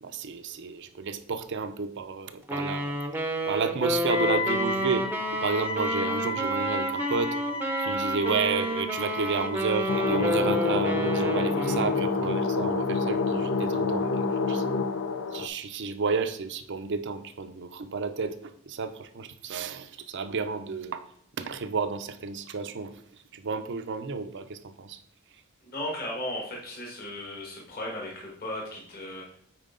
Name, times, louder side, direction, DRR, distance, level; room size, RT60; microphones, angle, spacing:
voice 1, 0.0-3.0 3.5-5.1 5.4-7.4 7.8-14.8 15.3-21.1 21.4-23.0 23.3-25.0, right 4 dB, 55° right, 9 dB, 0.6 m, -31 dB
Wind instrument woodwind instrument, 2.5-12.1, equal, 10° right, 0.7 m, -30 dB
Wind instrument woodwind instrument 2, 4.1-10.5, left 1 dB, 25° left, 1.0 m, -34 dB
sound 1, 9.9-15.5, left 4 dB, 65° left, 0.6 m, -27 dB
voice 2, 25.7-29.4, left 1 dB, 45° left, -2 dB, 1.8 m, -36 dB
9.0 x 4.5 x 3.8 m, 0.66 s
head